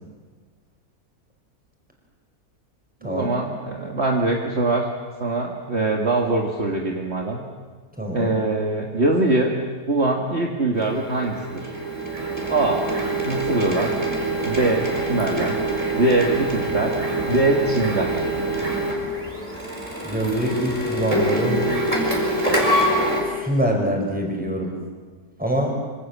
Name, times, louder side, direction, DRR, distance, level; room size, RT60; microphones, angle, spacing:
voice 1, 3.0-4.9 5.2-7.4 8.1-9.5 9.9-11.7 12.5-12.8 13.2-13.9 14.4-15.6 16.0-17.0 17.3-18.2, right 2 dB, 45° right, 0 dB, 2.2 m, -22 dB
voice 2, 8.0-8.4 20.0-21.8 23.2-24.7 25.4-25.7, right 1 dB, 5° right, 1 dB, 5.4 m, -24 dB
Printer, 10.8-23.2, right 1 dB, 20° right, 4.9 m, -25 dB
26.0 x 25.0 x 7.4 m, 1.4 s
omnidirectional pair, 1.6 m